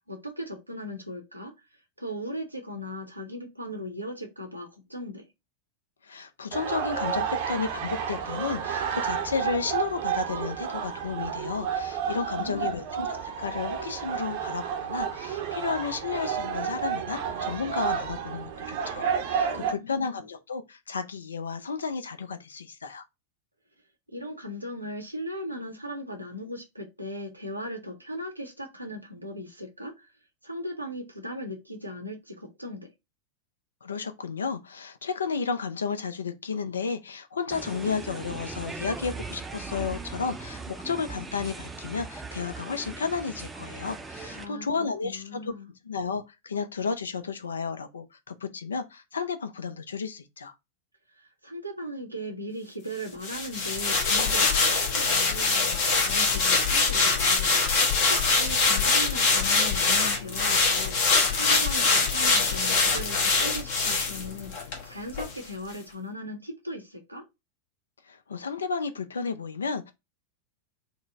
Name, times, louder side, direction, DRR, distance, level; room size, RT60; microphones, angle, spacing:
voice 1, 0.1-1.5 2.0-5.2 12.4-12.8 19.5-20.2 24.1-30.1 30.4-32.9 44.4-44.7 45.0-45.7 51.2-57.5 58.2-61.0 61.3-64.5 64.8-67.2, equal, 85° right, 0.8 m, -38 dB
voice 2, 6.0-23.0 33.8-45.5 45.8-50.5 68.1-69.9, left 5 dB, 70° left, 0.5 m, -32 dB
sound 1, 6.5-19.7, right 7 dB, 50° right, 0.6 m, -31 dB
sound 2, 37.5-44.5, right 3 dB, 10° right, 0.5 m, -39 dB
sound 3, 53.2-64.8 65.1-65.3, left 4 dB, 50° left, 1.0 m, -23 dB
3.8 x 2.1 x 3.4 m
figure-of-eight pair, 90°, 0 cm